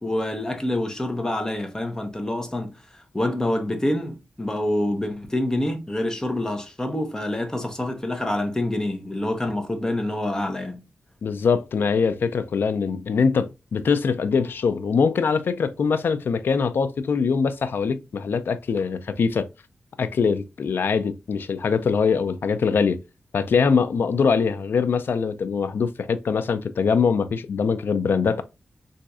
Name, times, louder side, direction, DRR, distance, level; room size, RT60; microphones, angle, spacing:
voice 1, 0.0-2.7 3.1-10.8, left 1 dB, 15° left, 0.9 m, -26 dB
voice 2, 11.2-19.5 20.0-23.0 23.3-28.4, left 5 dB, 75° left, 0.4 m, -23 dB
4.0 x 2.6 x 2.3 m
wide cardioid pair, 90°, 4 cm